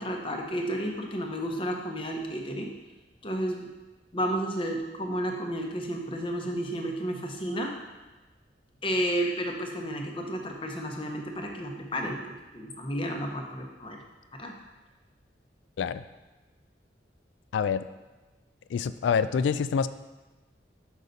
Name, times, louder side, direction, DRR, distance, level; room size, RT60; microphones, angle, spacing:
voice 1, 0.0-2.7 3.2-3.7 4.1-7.7 8.8-14.0 14.3-14.5, equal, 30° left, 2 dB, 0.8 m, -32 dB
voice 2, 17.5-17.9 18.7-19.9, left 6 dB, 80° left, 14 dB, 0.3 m, -26 dB
6.6 x 5.4 x 4.0 m, 1.2 s
head